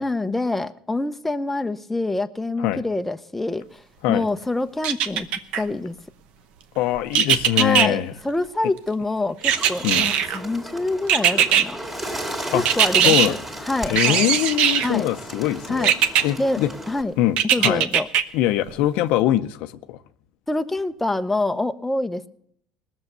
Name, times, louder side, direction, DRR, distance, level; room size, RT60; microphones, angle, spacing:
voice 1, 0.0-3.8 4.1-5.3 5.6-6.0 7.5-11.8 12.5-13.4 13.7-14.3 14.8-15.1 15.7-15.9 16.4-16.6 16.9-17.1 17.5-18.1 20.5-22.3, left 2 dB, 10° left, 0.7 m, -26 dB
sound 1, 4.8-5.6 7.1-7.9 9.4-10.4 11.1-11.6 12.7-13.3 14.0-14.9 15.8-16.2 17.4-18.2 18.7-18.8, right 9 dB, 70° right, 0.9 m, -19 dB
voice 2, 6.8-8.1 9.8-10.1 12.5-12.6 13.0-13.4 13.9-15.9 16.2-16.7 17.2-17.8 18.3-20.0, left 13 dB, 75° left, 0.7 m, -22 dB
Bird, 9.4-17.0, right 1 dB, 15° right, 2.3 m, -35 dB
19.5 x 7.1 x 6.7 m
supercardioid pair, 100°, 2 cm